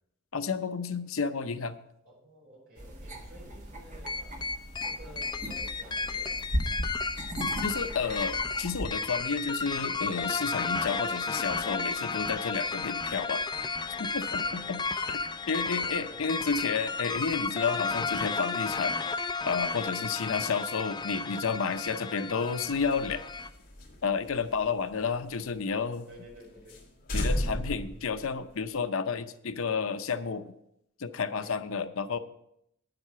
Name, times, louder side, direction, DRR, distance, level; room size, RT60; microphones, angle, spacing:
voice 1, 0.3-1.8 7.6-13.4 14.0-14.8 15.1-15.2 15.5-19.0 19.4-23.2 24.0-26.1 27.1-30.5 31.0-32.2, left 5 dB, 70° left, 10 dB, 0.6 m, -31 dB
voice 2, 2.0-4.5 4.8-6.4 14.4-16.5 19.9-20.1 26.1-26.8 31.4-31.6, right 1 dB, 50° right, -5 dB, 4.8 m, -52 dB
sound 1, 2.8-8.9, equal, 35° right, 1.5 m, -37 dB
fallin-distortedstar-trimmed-normalized, 4.1-23.5, left 4 dB, 20° left, 0.4 m, -33 dB
sound 2, 22.7-25.6 25.9-26.0 26.3-26.4 26.7-26.8 27.1-28.8, left 1 dB, 40° left, 2.8 m, -34 dB
9.8 x 7.9 x 5.6 m, 0.77 s
head